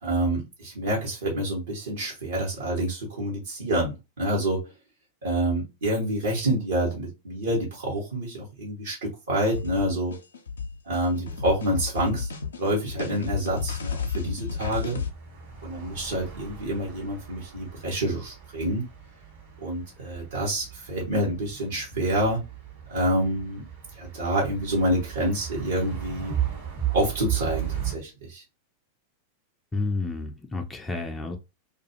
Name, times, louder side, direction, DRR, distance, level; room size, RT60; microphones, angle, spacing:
voice 1, 0.0-4.6 5.2-10.1 10.9-12.3 12.6-15.0 15.6-18.8 19.6-22.4 22.9-23.6 24.0-26.4 26.9-28.4, right 1 dB, 70° right, -4 dB, 1.0 m, -27 dB
sound 1, 9.5-15.1, left 6 dB, 75° left, 0.5 m, -32 dB
sound 2, 12.8-28.0, right 10 dB, 55° right, 1.3 m, -36 dB
voice 2, 29.7-31.4, left 3 dB, 15° left, 4 dB, 0.4 m, -30 dB
2.4 x 2.3 x 2.8 m, 0.26 s
figure-of-eight pair, 90°, 0 cm